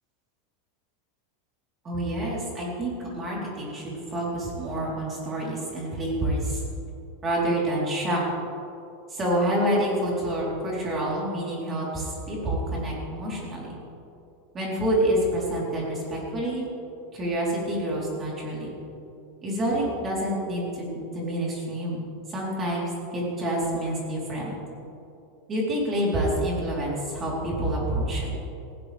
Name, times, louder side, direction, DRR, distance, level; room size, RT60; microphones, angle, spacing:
voice 1, 1.8-6.6 7.2-8.2 9.1-13.7 14.5-16.7 17.1-18.7 19.4-22.0 22.3-24.5 25.5-28.3, right 1 dB, 20° right, -5 dB, 3.7 m, -27 dB
19.0 x 15.5 x 3.5 m, 2.9 s
supercardioid pair, 170°, 0 cm